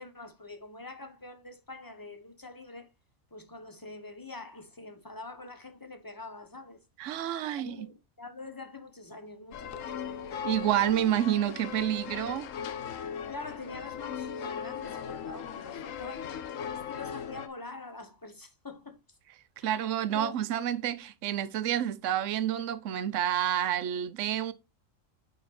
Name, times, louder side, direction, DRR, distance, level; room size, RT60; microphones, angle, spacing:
voice 1, 0.0-2.9 3.3-6.8 7.5-10.3 13.2-16.3 16.7-19.2 19.6-19.8 20.1-20.5, left 3 dB, 15° left, 1.1 m, -45 dB
voice 2, 7.0-7.9 10.4-12.5 19.6-24.5, right 11 dB, 70° right, 1.1 m, -29 dB
sound 1, 9.5-17.5, left 8 dB, 80° left, 1.2 m, -38 dB
9.4 x 4.3 x 4.1 m
omnidirectional pair, 1.4 m